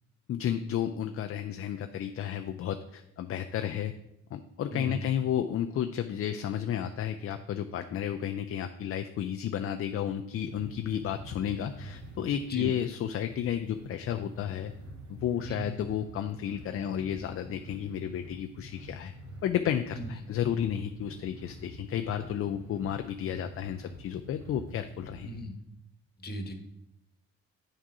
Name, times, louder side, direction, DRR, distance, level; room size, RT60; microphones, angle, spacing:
voice 1, 0.3-3.9 4.3-14.7 15.1-19.1 19.4-25.3, left 9 dB, 50° left, 7 dB, 0.4 m, -32 dB
voice 2, 4.7-5.0 12.5-12.7 15.4-15.7 19.9-20.1 25.2-25.5 26.2-26.5, right 1 dB, 30° left, 5 dB, 1.2 m, -37 dB
sound 1, 10.4-25.4, right 1 dB, 80° right, 2.6 m, -47 dB
8.9 x 3.7 x 4.8 m, 0.84 s
cardioid pair, 90°, 30 cm